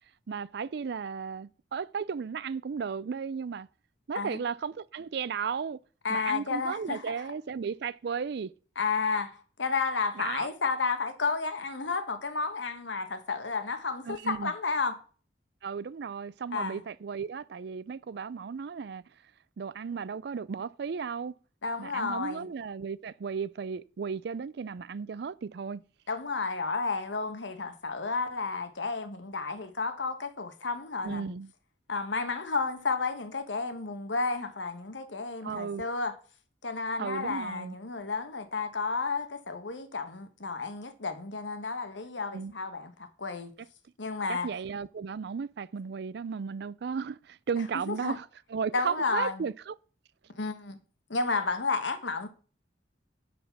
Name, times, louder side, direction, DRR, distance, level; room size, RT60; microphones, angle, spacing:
voice 1, 0.3-3.7 4.1-5.8 6.1-8.5 10.2-10.5 14.1-14.5 15.6-19.0 19.6-21.3 21.8-25.8 31.0-31.5 35.4-35.9 37.0-37.8 42.3-42.5 44.3-49.7, right 6 dB, 60° right, 0.4 m, -35 dB
voice 2, 6.0-7.0 8.8-14.9 16.5-16.8 21.6-22.5 26.1-31.3 31.9-36.1 36.6-43.5 44.0-44.5 47.9-48.2 48.7-49.4 50.3-50.8 51.1-52.3, left 4 dB, 80° left, 1.3 m, -32 dB
10.0 x 4.3 x 5.8 m
head